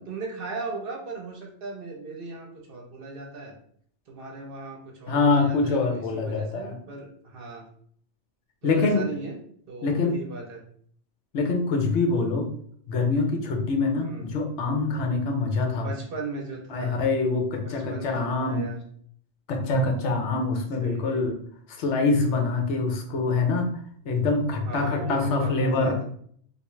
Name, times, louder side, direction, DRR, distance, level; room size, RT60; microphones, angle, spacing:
voice 1, 0.0-3.5 4.1-7.7 8.6-9.3 9.7-10.6 14.0-14.3 15.8-17.0 17.6-18.8 20.8-21.2 24.7-26.0, right 3 dB, 55° right, 1 dB, 0.8 m, -37 dB
voice 2, 5.1-6.7 8.6-9.0 9.8-10.2 11.3-12.5 12.9-15.9 16.7-18.7 19.5-21.4 21.8-23.7 24.1-26.0, left 3 dB, 75° left, 3 dB, 1.0 m, -25 dB
3.4 x 2.5 x 3.1 m, 0.62 s
omnidirectional pair, 1.2 m